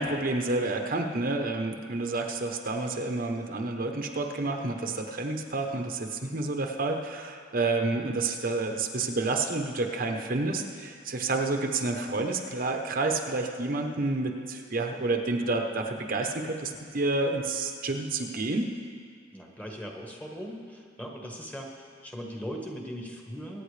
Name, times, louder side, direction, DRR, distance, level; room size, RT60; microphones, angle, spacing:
voice 1, 0.0-18.7, right 2 dB, 50° right, 3 dB, 0.9 m, -29 dB
voice 2, 19.3-23.6, equal, 10° left, 0 dB, 1.3 m, -39 dB
23.5 x 9.0 x 3.3 m, 2.1 s
head